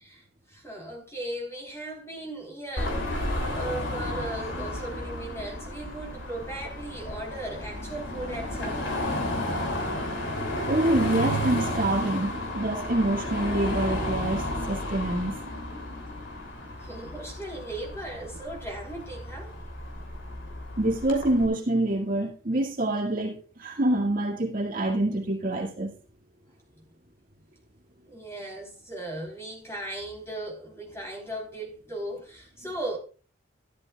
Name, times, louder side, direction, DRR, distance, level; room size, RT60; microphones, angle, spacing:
voice 1, 0.0-9.2 16.8-19.6 26.8-26.9 28.1-33.0, right 1 dB, 15° left, 3.7 m, -37 dB
Car passing by / Traffic noise roadway noise / Engine, 2.8-21.5, left 1 dB, 65° left, 3.0 m, -32 dB
voice 2, 10.7-15.3 20.8-25.9, right 1 dB, 45° right, 1.9 m, -26 dB
13.0 x 12.0 x 2.3 m
head